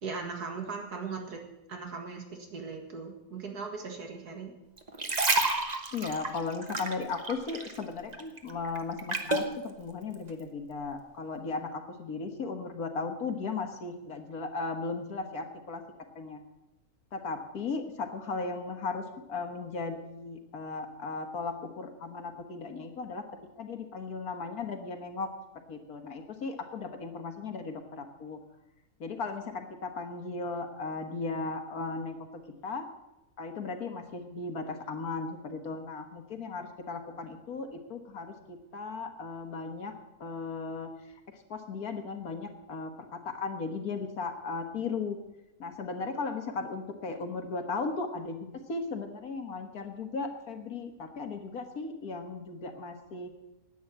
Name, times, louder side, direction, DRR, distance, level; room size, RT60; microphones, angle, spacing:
voice 1, 0.0-4.5, right 4 dB, 85° right, 2 dB, 2.5 m, -39 dB
sound 1, 4.8-7.8 8.1-9.5 10.1-10.3, right 3 dB, 30° right, 1.1 m, -30 dB
voice 2, 5.9-15.8 16.2-16.4 17.1-23.2 23.6-25.3 25.6-28.4 29.0-32.3 32.6-32.8 33.4-39.9 40.2-40.9 41.3-45.2 45.6-53.3, left 4 dB, 70° left, 5 dB, 1.9 m, -36 dB
10.5 x 9.1 x 8.6 m, 0.94 s
omnidirectional pair, 1.6 m